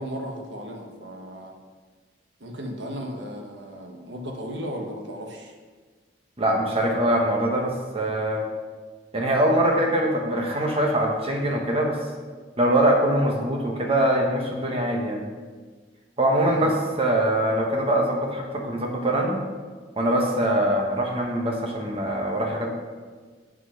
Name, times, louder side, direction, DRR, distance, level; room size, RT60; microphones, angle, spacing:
voice 1, 0.0-1.6 2.4-5.5 16.4-16.8, equal, 85° right, 2 dB, 1.4 m, -35 dB
voice 2, 6.4-8.4 9.1-12.0 12.6-15.2 16.2-19.4 20.0-22.7, right 1 dB, 35° right, 1 dB, 1.2 m, -23 dB
7.9 x 5.9 x 5.7 m, 1.4 s
head